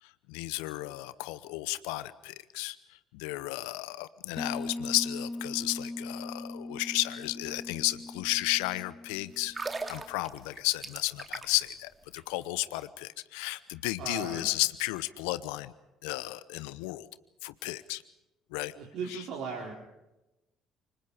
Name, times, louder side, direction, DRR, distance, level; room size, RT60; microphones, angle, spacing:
voice 1, 0.0-9.6 9.9-15.7 16.0-17.1 17.4-18.0 18.5-18.7 19.1-19.3, left 20 dB, 75° left, 16 dB, 0.8 m, -33 dB
sound 1, 4.4-9.9, left 2 dB, 20° left, 2.1 m, -40 dB
sound 2, 9.4-11.7 12.0-12.2, right 3 dB, 30° right, 3.1 m, -38 dB
voice 2, 14.0-14.5 18.8-19.7, right 5 dB, 65° right, -1 dB, 4.6 m, -37 dB
29.0 x 25.0 x 5.0 m, 0.97 s
hypercardioid pair, 55°, 0 cm